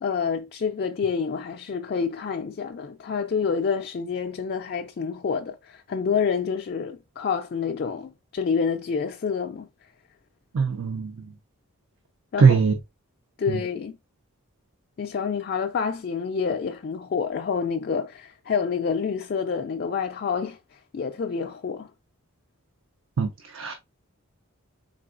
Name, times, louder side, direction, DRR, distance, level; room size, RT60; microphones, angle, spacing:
voice 1, 0.0-9.7 12.3-12.6 13.4-14.0 15.0-21.9, left 6 dB, 45° left, 0.3 m, -28 dB
voice 2, 10.5-11.3 12.4-12.7 13.5-13.6 23.2-23.7, right 5 dB, 65° right, 0.5 m, -21 dB
4.2 x 3.8 x 2.5 m
head